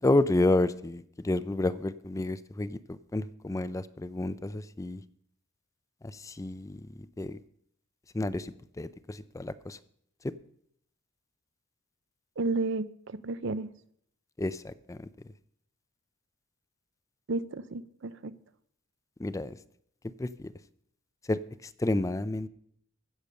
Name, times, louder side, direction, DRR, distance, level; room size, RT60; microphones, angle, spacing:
voice 1, 0.0-5.0 6.0-7.4 8.1-9.8 14.4-15.1 19.2-19.6 20.2-20.5 21.3-22.5, left 2 dB, 15° left, 15 dB, 0.4 m, -30 dB
voice 2, 12.4-13.7 17.3-18.3, right 3 dB, 65° right, 16 dB, 0.6 m, -32 dB
15.0 x 6.7 x 6.3 m, 0.67 s
head